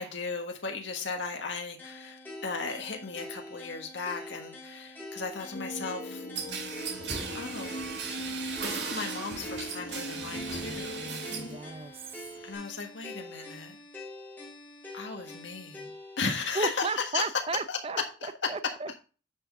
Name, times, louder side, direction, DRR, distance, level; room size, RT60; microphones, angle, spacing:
voice 1, 0.0-6.3 7.3-7.9 8.6-11.1 12.4-13.8 14.9-17.3 17.7-17.8 18.2-18.5, left 4 dB, 90° left, 3 dB, 1.5 m, -36 dB
sound 1, 1.8-16.2, left 1 dB, 10° left, 2.6 m, -45 dB
sound 2, 5.5-11.6, equal, 60° left, 0.9 m, -40 dB
sound 3, 6.4-11.6 11.9-12.5, right 5 dB, 70° right, 2.2 m, -37 dB
voice 2, 11.3-12.1 16.2-18.0 18.5-18.9, right 4 dB, 30° right, 13 dB, 0.6 m, -34 dB
9.8 x 5.8 x 3.6 m, 0.36 s
head